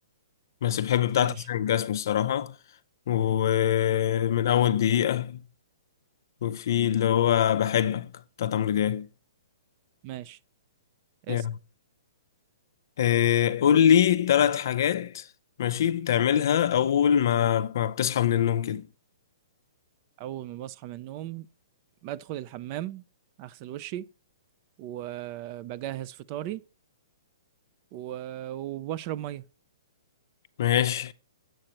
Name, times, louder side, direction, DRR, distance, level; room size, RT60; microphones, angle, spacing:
voice 1, 0.6-2.5 3.1-5.4 6.4-8.1 8.4-9.1 11.3-11.5 13.0-15.2 15.6-18.9 30.6-31.1, left 10 dB, 55° left, 0.5 m, -23 dB
voice 2, 10.0-10.4 11.3-11.5 20.2-21.5 22.0-23.0 23.4-24.0 24.8-26.6 27.9-29.4, right 13 dB, 30° right, 0.3 m, -36 dB
7.6 x 6.4 x 2.9 m
hypercardioid pair, 160°, 2 cm